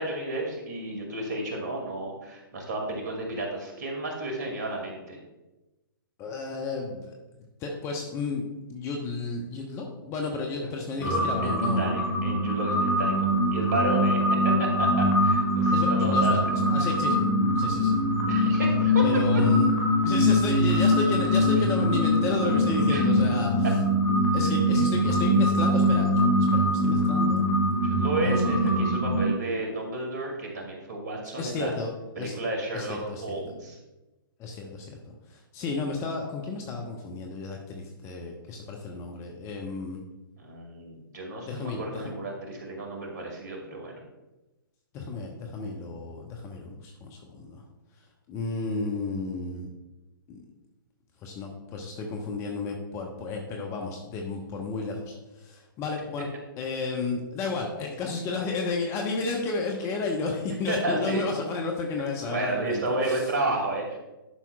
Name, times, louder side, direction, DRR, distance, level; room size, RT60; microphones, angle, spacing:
voice 1, 0.0-5.2 11.0-14.2 14.4-16.4 16.8-16.9 18.3-19.0 22.9-23.0 27.8-31.7 32.2-33.8 40.4-44.0 60.7-61.2 62.2-64.0, right 2 dB, 55° right, 0 dB, 2.3 m, -32 dB
voice 2, 6.2-7.1 7.6-12.0 15.7-17.2 17.6-18.0 18.4-18.5 19.0-19.7 20.0-23.7 24.3-27.4 28.2-28.7 31.2-32.3 32.7-33.4 34.4-40.0 41.5-42.1 44.9-47.6 48.3-49.7 50.3-50.4 51.2-56.3 56.6-63.3, left 3 dB, 25° left, 2 dB, 0.8 m, -32 dB
sound 1, 11.0-29.2, equal, 45° left, 2.0 m, -23 dB
11.0 x 5.8 x 2.3 m, 1.0 s
figure-of-eight pair, 120°, 12 cm